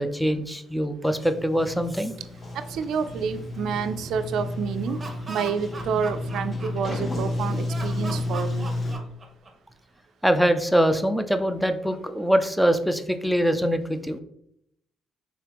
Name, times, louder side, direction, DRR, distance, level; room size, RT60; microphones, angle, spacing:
voice 1, 0.0-2.2 10.2-14.2, equal, ahead, 9 dB, 0.4 m, -23 dB
Sliding door, 1.1-8.9, left 2 dB, 30° left, 0.9 m, -31 dB
voice 2, 2.5-5.0 5.3-8.7, right 6 dB, 75° right, 9 dB, 0.3 m, -29 dB
Laughter, 4.7-7.2 7.7-9.7, right 3 dB, 30° right, 0.8 m, -39 dB
3.6 x 3.3 x 2.9 m, 0.74 s
cardioid pair, 95°, 0 cm